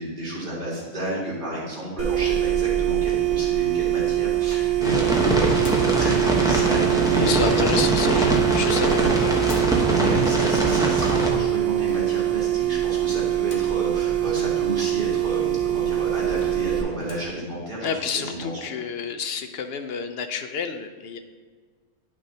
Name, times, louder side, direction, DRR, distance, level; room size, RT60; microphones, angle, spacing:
voice 1, 0.0-8.6 8.9-9.1 9.9-18.6, right 1 dB, 35° right, -7 dB, 2.6 m, -31 dB
sound 1, 2.0-16.8, right 13 dB, 65° right, 1.3 m, -23 dB
sound 2, 3.9-4.7 5.6-6.0 7.7-8.1 9.4-9.8 11.9-12.3 13.4-13.8 14.3-14.4 14.6-14.7 15.5-15.6 16.0-16.1 16.4-16.7 17.0-17.3, left 2 dB, 85° left, 1.6 m, -43 dB
sound 3, 4.8-11.3, right 1 dB, 5° right, 0.8 m, -23 dB
voice 2, 7.1-9.4 17.8-21.2, left 6 dB, 60° left, 7 dB, 0.7 m, -29 dB
10.5 x 6.2 x 2.8 m, 1.5 s
omnidirectional pair, 1.4 m